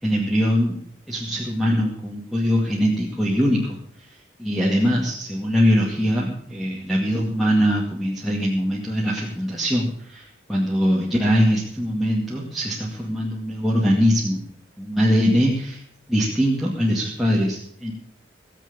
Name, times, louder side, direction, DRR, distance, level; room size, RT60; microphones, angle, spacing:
voice 1, 0.0-0.8 1.1-3.8 4.4-14.4 14.8-15.8 16.1-17.9, equal, ahead, -5 dB, 2.2 m, -22 dB
18.5 x 7.7 x 7.2 m, 0.68 s
head